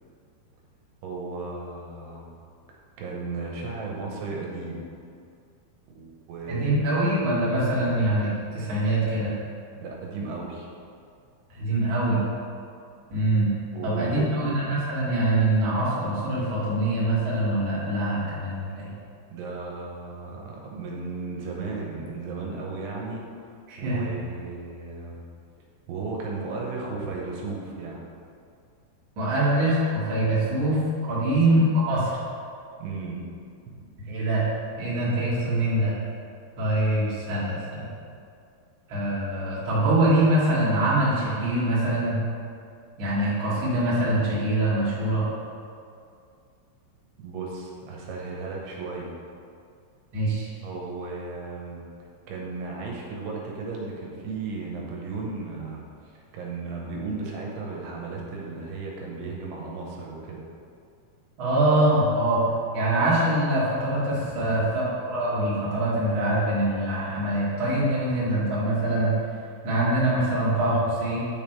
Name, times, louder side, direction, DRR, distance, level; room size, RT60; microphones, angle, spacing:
voice 1, 1.0-2.3 3.0-4.9 5.9-6.9 7.7-7.8 9.8-10.7 13.7-14.5 19.3-23.2 23.8-25.2 25.9-28.0 31.2-31.5 32.8-33.2 33.7-33.8 47.2-49.1 50.6-51.8 52.3-60.4 64.3-64.4, right 3 dB, 90° right, -2 dB, 3.0 m, -35 dB
voice 2, 6.5-9.3 11.5-12.2 13.1-13.5 13.8-18.9 23.7-24.1 29.2-32.1 34.0-34.4 34.8-35.9 36.6-37.8 38.9-42.2 43.0-45.2 50.1-50.5 61.4-62.4 62.7-69.1 69.6-71.2, right 1 dB, 45° right, -9 dB, 1.8 m, -24 dB
9.4 x 3.6 x 4.5 m, 2.4 s
omnidirectional pair, 4.7 m